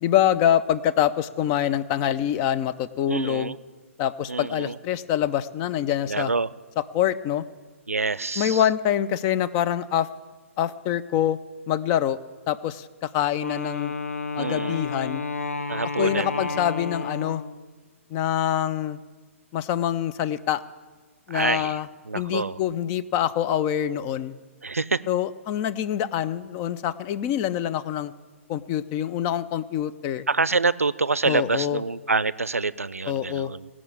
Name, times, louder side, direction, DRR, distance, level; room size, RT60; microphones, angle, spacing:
voice 1, 0.0-3.5 4.0-6.3 6.8-7.4 8.4-10.1 10.6-11.4 11.7-12.2 12.5-13.9 14.4-15.2 16.0-17.4 18.1-19.0 19.5-20.6 21.3-21.9 22.1-24.3 25.1-28.1 28.5-30.2 31.3-31.8 33.1-33.5, left 10 dB, 25° left, 13 dB, 0.4 m, -25 dB
voice 2, 3.1-3.6 4.3-4.8 6.1-6.5 7.9-8.6 14.3-14.8 15.7-16.7 21.3-21.8 22.1-22.6 24.6-25.0 30.3-33.7, right 3 dB, 80° right, 18 dB, 0.4 m, -26 dB
Wind instrument woodwind instrument, 13.4-17.7, left 4 dB, 80° left, 0.8 m, -31 dB
18.0 x 6.1 x 8.5 m, 1.4 s
figure-of-eight pair, 125°, 8 cm